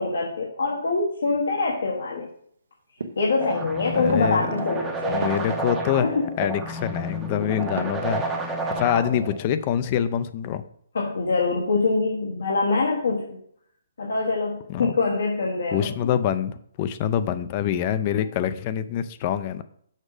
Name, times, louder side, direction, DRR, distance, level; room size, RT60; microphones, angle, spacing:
voice 1, 0.0-2.3 3.1-5.3 6.0-6.3 8.6-8.7 10.9-13.4 14.0-16.1, left 3 dB, 75° left, -1 dB, 1.4 m, -24 dB
sound 1, 3.0-3.7 4.1-6.0 6.3-7.1 7.7-8.7 9.0-9.6, right 4 dB, 85° right, 1.1 m, -39 dB
sound 2, 3.4-9.4, right 2 dB, 10° right, 0.8 m, -30 dB
voice 2, 4.0-4.5 5.1-6.1 6.4-10.6 14.7-14.9 15.7-19.6, left 9 dB, 30° left, 13 dB, 0.5 m, -25 dB
6.5 x 6.2 x 4.9 m, 0.65 s
hypercardioid pair, 165°, 0 cm